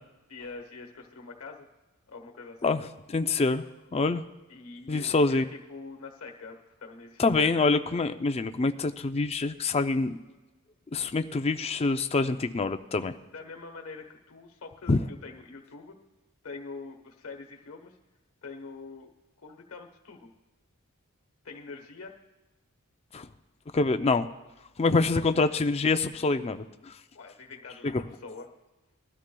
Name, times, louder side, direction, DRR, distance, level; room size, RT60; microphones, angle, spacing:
voice 1, 0.3-1.7 2.1-2.7 4.5-7.7 13.3-16.0 16.4-18.0 18.4-19.1 19.4-20.3 21.4-22.1 25.4-25.5 27.1-28.5, left 4 dB, 65° left, 4 dB, 1.2 m, -44 dB
voice 2, 3.1-3.6 3.9-4.2 4.9-5.4 7.2-10.1 10.9-13.1 14.9-15.0 23.1-23.3 23.7-24.3 24.8-26.9 27.8-28.0, left 3 dB, 30° left, 9 dB, 0.4 m, -25 dB
21.0 x 13.0 x 2.3 m, 1.1 s
head